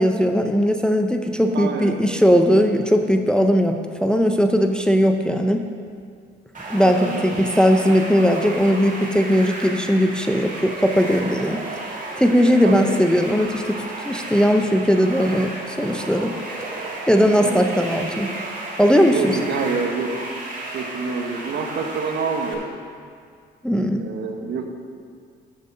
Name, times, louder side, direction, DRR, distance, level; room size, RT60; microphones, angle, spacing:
voice 1, 0.0-5.7 6.7-16.4 17.1-18.3 18.8-19.4 23.6-24.1, equal, 5° left, 5 dB, 0.6 m, -19 dB
voice 2, 1.5-2.0 6.8-7.4 12.6-13.0 17.4-17.7 19.0-20.2 20.7-22.8 24.0-24.7, right 5 dB, 65° right, 3 dB, 1.2 m, -27 dB
sound 1, 6.5-22.5, right 2 dB, 40° right, 2.2 m, -33 dB
8.0 x 6.7 x 6.5 m, 2.1 s
cardioid pair, 90°, 20 cm